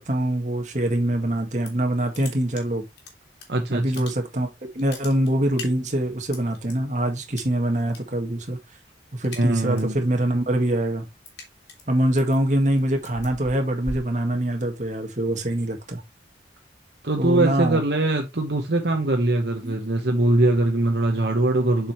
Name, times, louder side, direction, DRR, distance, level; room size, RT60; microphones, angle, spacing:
voice 1, 0.0-2.9 3.7-4.5 4.7-8.6 9.1-11.1 11.9-16.0 17.2-17.8 19.6-19.8, right 1 dB, 40° right, 1.7 m, -24 dB
sound 1, 1.4-3.4 3.8-4.4 4.7-6.7 7.3-8.0 8.3-8.6 8.9-10.0 10.4-14.9, left 3 dB, 70° left, 2.6 m, -40 dB
voice 2, 3.5-4.0 9.4-10.0 17.0-21.9, right 2 dB, 65° right, 1.2 m, -22 dB
7.5 x 5.3 x 3.0 m
head